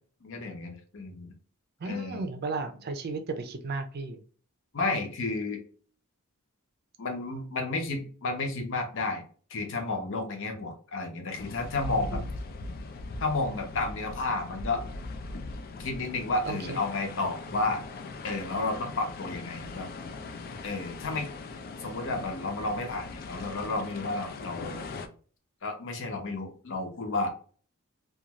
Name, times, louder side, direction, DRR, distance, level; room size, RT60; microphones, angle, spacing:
voice 1, 0.2-1.3 1.9-2.2 4.7-5.6 7.0-9.2 9.5-12.2 13.2-14.8 15.8-17.8 18.2-19.9 20.6-21.3 21.8-24.8 25.6-27.3, left 3 dB, 60° left, 3 dB, 0.7 m, -31 dB
voice 2, 1.8-4.2 12.0-12.3 16.5-16.8, right 3 dB, 45° right, 7 dB, 0.5 m, -34 dB
sound 1, 11.4-25.1, left 3 dB, 45° left, 0.3 m, -40 dB
2.5 x 2.3 x 2.8 m, 0.42 s
head